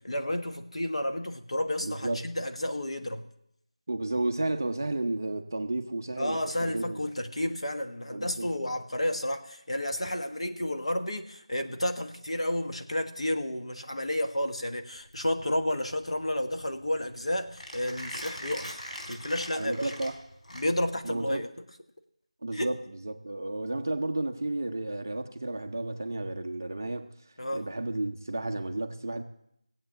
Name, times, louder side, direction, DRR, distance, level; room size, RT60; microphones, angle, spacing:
voice 1, 0.0-3.3 6.2-18.7 19.1-19.9 20.5-21.5 22.5-22.7 27.4-27.7, left 1 dB, 65° left, 6 dB, 1.5 m, -31 dB
voice 2, 1.8-2.2 3.9-7.0 8.1-8.5 19.6-20.1 21.0-21.4 22.4-22.8 23.0-27.1 27.5-29.2, right 2 dB, 25° right, 6 dB, 0.7 m, -32 dB
Mechanisms, 15.0-21.1, equal, 90° left, 3.9 m, -42 dB
17.0 x 8.1 x 7.9 m, 0.77 s
figure-of-eight pair, 180°, 3 cm